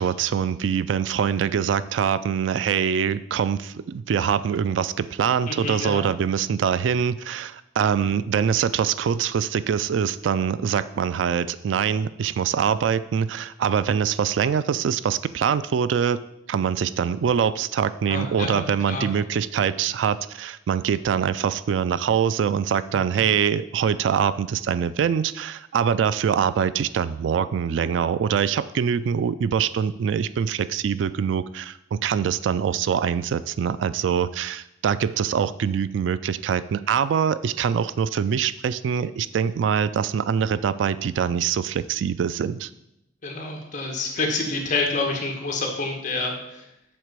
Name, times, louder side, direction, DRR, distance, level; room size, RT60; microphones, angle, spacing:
voice 1, 0.0-16.2 16.5-42.7, right 7 dB, 90° right, 16 dB, 0.3 m, -24 dB
voice 2, 5.5-6.0 18.1-18.6 18.9-19.1 23.2-23.3 43.2-46.6, left 3 dB, 45° left, 1 dB, 1.4 m, -28 dB
7.7 x 4.0 x 6.7 m, 0.84 s
head